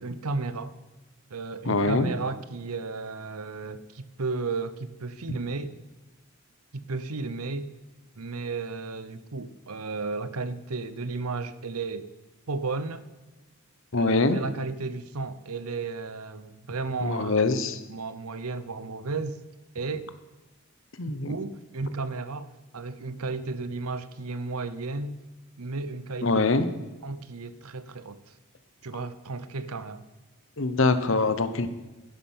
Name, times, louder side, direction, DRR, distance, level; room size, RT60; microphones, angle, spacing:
voice 1, 0.0-0.7 1.3-5.7 6.7-7.7 8.2-12.1 12.5-13.0 13.9-17.6 17.9-19.4 19.7-20.1 21.3-25.2 25.6-26.4 27.0-28.3 28.8-30.0, right 3 dB, 80° right, 14 dB, 0.8 m, -33 dB
voice 2, 1.6-2.1 13.9-14.4 17.0-17.8 21.0-21.3 26.2-26.7 30.6-31.7, left 3 dB, 60° left, 11 dB, 1.0 m, -24 dB
11.5 x 10.5 x 5.7 m, 1.1 s
head